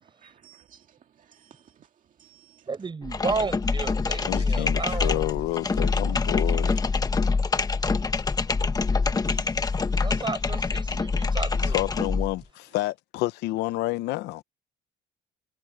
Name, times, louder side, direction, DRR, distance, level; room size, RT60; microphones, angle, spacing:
voice 1, 0.0-2.7 9.1-10.2, right 9 dB, 50° right, 2.0 m, -57 dB
voice 2, 2.7-5.3 10.0-11.8, right 4 dB, 25° right, 7.3 m, -33 dB
sound 1, 3.0-12.3, left 4 dB, 20° left, 1.3 m, -25 dB
voice 3, 4.3-6.7 11.7-14.4, left 18 dB, 85° left, 0.8 m, -29 dB
cardioid pair, 110°, 17 cm